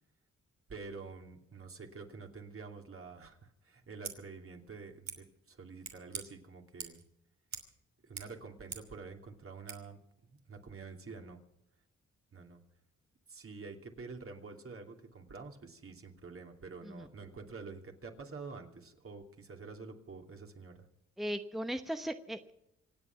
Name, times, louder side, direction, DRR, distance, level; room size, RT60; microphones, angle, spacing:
voice 1, 0.7-7.0 8.0-10.0 10.5-11.4 12.3-12.6 13.3-20.9, right 4 dB, 50° right, 3 dB, 2.8 m, -48 dB
Scissors, 3.9-4.2 5.0-5.2 5.8-6.2 6.8-7.1 7.5-7.7 8.0-8.9 9.6-9.8, right 6 dB, 70° right, 3.0 m, -44 dB
voice 2, 21.2-22.5, equal, ahead, 8 dB, 0.9 m, -37 dB
26.0 x 8.7 x 5.9 m, 0.84 s
cardioid pair, 65°, 29 cm